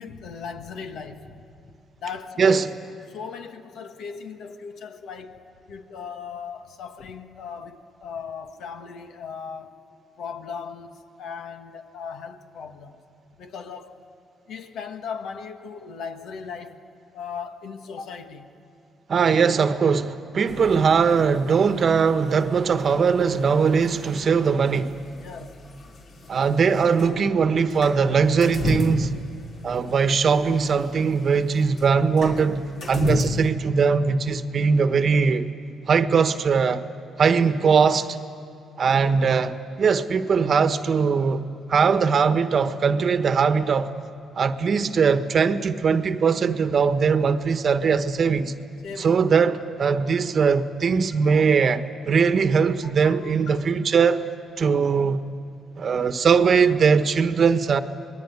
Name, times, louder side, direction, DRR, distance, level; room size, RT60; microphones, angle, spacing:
voice 1, 0.0-1.5 2.0-2.7 3.1-9.9 10.2-13.0 13.4-14.0 14.5-16.8 17.1-18.6 25.2-25.6 37.3-37.4 48.8-49.2 51.2-51.5 52.8-53.6, left 6 dB, 75° left, 1.7 m, -38 dB
voice 2, 19.1-25.0 26.3-29.2 29.6-35.5 35.9-36.8 37.2-38.2 38.8-43.9 44.3-48.5 49.0-54.3 54.6-55.2 55.8-57.8, right 5 dB, 50° right, 1.2 m, -20 dB
sound 1, 20.5-33.5, left 2 dB, 60° left, 3.2 m, -34 dB
27.0 x 20.5 x 9.5 m
cardioid pair, 90°, 0 cm